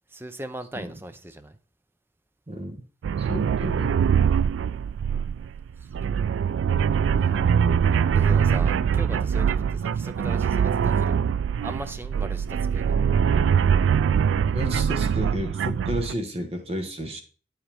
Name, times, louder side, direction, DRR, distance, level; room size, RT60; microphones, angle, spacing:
voice 1, 0.1-1.6 4.3-4.5 5.8-5.9 7.2-7.7 8.1-11.2 11.6-13.0, right 1 dB, 10° right, 0.6 m, -39 dB
voice 2, 2.5-2.8 3.2-4.0 14.5-17.2, equal, 35° right, 1.3 m, -32 dB
sound 1, 3.0-16.1, right 7 dB, 90° right, 0.3 m, -23 dB
9.3 x 7.6 x 3.5 m
head